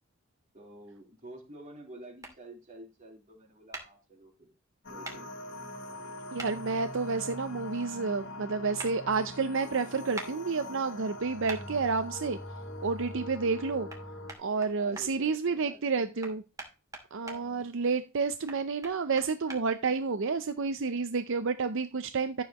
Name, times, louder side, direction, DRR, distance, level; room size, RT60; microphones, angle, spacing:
voice 1, 0.5-4.5 4.9-5.3 14.7-16.0 17.2-17.8, right 1 dB, 40° right, -1 dB, 3.8 m, -49 dB
sound 1, 2.2-2.3 3.7-3.9 5.0-5.2 6.4-6.5 8.8-8.9 10.1-10.3 11.5-11.6 13.9-14.0 14.3-15.1 16.2-17.4 18.5-19.6, right 2 dB, 15° right, 2.5 m, -41 dB
sound 2, 4.8-14.3, left 1 dB, 55° left, 1.5 m, -42 dB
voice 2, 6.3-12.4 12.8-13.9 14.4-16.4 17.1-22.4, right 4 dB, 65° right, 10 dB, 0.6 m, -30 dB
13.5 x 7.2 x 3.0 m, 0.31 s
head